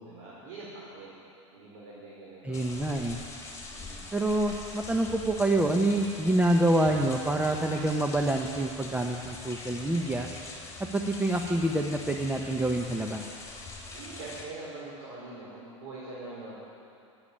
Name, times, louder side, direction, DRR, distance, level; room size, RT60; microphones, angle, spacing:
voice 1, 0.0-1.1 1.5-2.8 3.7-4.0 13.9-16.6, right 2 dB, 60° right, -7 dB, 4.8 m, -43 dB
voice 2, 2.4-3.2 4.1-10.3 10.9-13.2, right 1 dB, 10° right, 3 dB, 0.9 m, -27 dB
sound 1, 2.5-14.4, left 3 dB, 20° left, 3.8 m, -43 dB
16.0 x 8.9 x 8.8 m, 2.5 s
hypercardioid pair, 100°, 17 cm